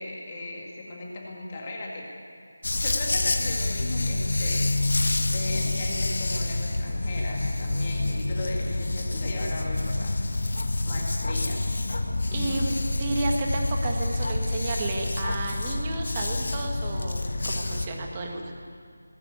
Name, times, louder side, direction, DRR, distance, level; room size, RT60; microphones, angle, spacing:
voice 1, 0.0-2.1 2.8-4.9 5.3-10.2 10.8-11.7 12.3-12.6, left 2 dB, 20° left, -2 dB, 2.1 m, -36 dB
Dog, 2.6-17.9, left 2 dB, 50° left, 1.6 m, -27 dB
voice 2, 12.3-18.5, right 2 dB, 15° right, 2 dB, 1.7 m, -32 dB
19.0 x 16.5 x 9.5 m, 2.5 s
figure-of-eight pair, 180°, 0 cm